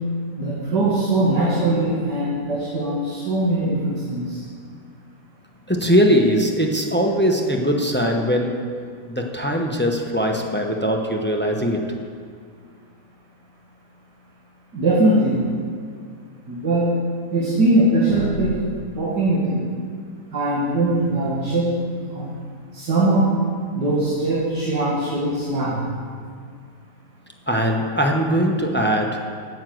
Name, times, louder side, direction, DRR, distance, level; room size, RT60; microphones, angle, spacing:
voice 1, 0.4-4.4 14.7-15.4 16.5-16.9 17.3-19.7 20.3-21.7 22.0-22.3 22.7-23.4 23.8-25.8, right 2 dB, 85° right, -6 dB, 2.5 m, -21 dB
voice 2, 5.7-8.6 9.1-11.8 27.5-29.2, equal, 10° left, 2 dB, 0.6 m, -20 dB
9.2 x 8.4 x 7.8 m, 2.1 s
omnidirectional pair, 1.8 m